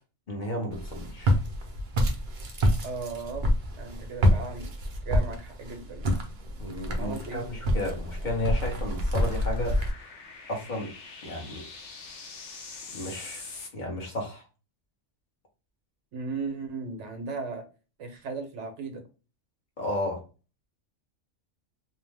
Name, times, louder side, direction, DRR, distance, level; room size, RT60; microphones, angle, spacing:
voice 1, 0.3-1.3 6.6-10.1 10.5-10.9 11.2-11.6 12.9-14.4 19.8-20.2, left 1 dB, 45° left, 0.9 m, -33 dB
Walk footsteps, 0.7-9.9, equal, 55° right, 0.6 m, -27 dB
voice 2, 2.8-4.7 5.1-6.1 7.0-7.5 16.1-17.6 18.0-19.0, right 4 dB, 75° right, 1.0 m, -36 dB
sound 1, 6.2-13.7, left 4 dB, 65° left, 1.0 m, -46 dB
2.7 x 2.0 x 3.2 m
omnidirectional pair, 1.3 m